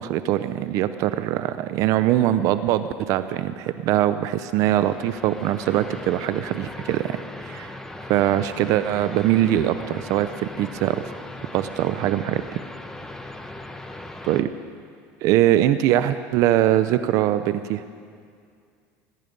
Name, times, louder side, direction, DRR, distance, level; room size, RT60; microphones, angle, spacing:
voice 1, 0.0-7.1 7.4-7.7 8.1-11.0 11.5-12.4 14.2-14.5 15.2-17.8, right 13 dB, 60° right, 12 dB, 0.6 m, -22 dB
sound 1, 4.4-14.4, left 1 dB, 10° left, 1.1 m, -38 dB
21.0 x 11.0 x 5.3 m, 2.3 s
supercardioid pair, 105°, 6 cm